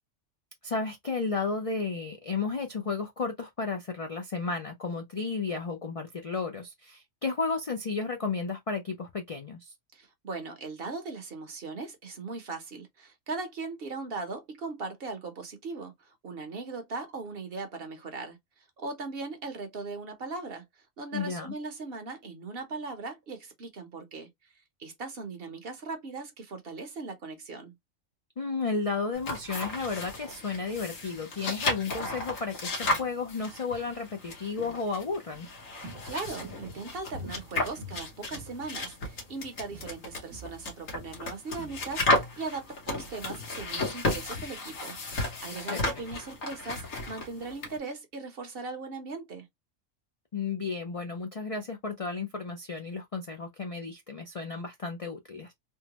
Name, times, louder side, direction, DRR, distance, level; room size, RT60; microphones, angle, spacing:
voice 1, 0.6-9.7 21.1-21.5 28.4-35.5 45.7-45.8 50.3-55.5, left 4 dB, 55° left, 0.4 m, -33 dB
voice 2, 9.9-24.5 24.8-27.8 36.0-49.5, right 3 dB, 50° right, 0.9 m, -39 dB
sound 1, 29.1-47.8, left 2 dB, 85° left, 1.6 m, -34 dB
Walk footsteps, 35.0-39.4 39.6-40.0 40.3-42.6 42.9-43.0, equal, 85° right, 1.2 m, -47 dB
3.6 x 2.1 x 2.8 m
omnidirectional pair, 1.3 m